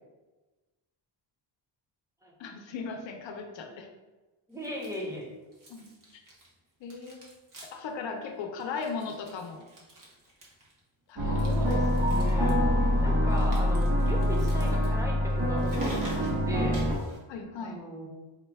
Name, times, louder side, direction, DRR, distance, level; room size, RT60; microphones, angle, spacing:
voice 1, 2.4-3.9 5.7-5.9 6.8-7.3 7.7-9.6 11.1-11.9 17.3-17.8, left 5 dB, 80° left, 3 dB, 0.7 m, -37 dB
voice 2, 4.5-5.2 11.4-12.6 13.0-16.8 17.6-18.1, equal, 5° right, -2 dB, 0.7 m, -37 dB
sound 1, 4.6-5.2 5.5-6.6 6.8-7.9 8.2-8.3 8.6-10.8 11.3-12.5 13.3-17.2, right 1 dB, 45° right, 1.0 m, -46 dB
sound 2, 11.2-16.9, left 1 dB, 85° right, 1.2 m, -25 dB
4.9 x 2.2 x 3.3 m, 1.2 s
wide cardioid pair, 160°, 44 cm